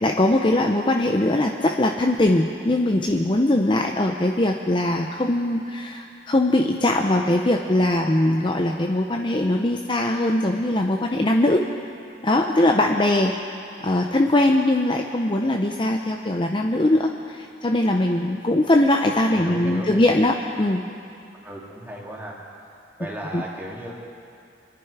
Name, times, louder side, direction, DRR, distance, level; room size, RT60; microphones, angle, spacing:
voice 1, 0.0-11.6 12.2-13.3 13.8-20.8 23.3-23.4, left 1 dB, 25° left, 2 dB, 0.6 m, -21 dB
voice 2, 19.3-20.1 21.4-22.4 23.0-23.9, right 1 dB, 10° right, -4 dB, 2.5 m, -36 dB
25.0 x 10.5 x 4.8 m, 2.6 s
head